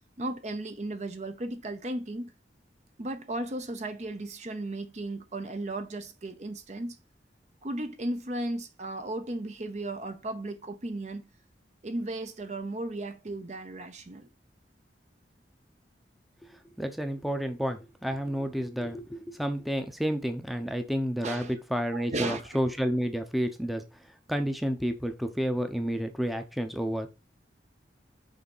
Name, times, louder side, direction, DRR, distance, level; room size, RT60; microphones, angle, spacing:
voice 1, 0.2-2.3 3.0-7.0 7.6-11.3 11.8-14.3 21.2-21.5 21.9-22.6, right 2 dB, 40° right, 0.7 m, -35 dB
voice 2, 16.8-23.8 24.3-27.1, equal, ahead, 0.7 m, -30 dB
6.4 x 3.5 x 5.4 m
head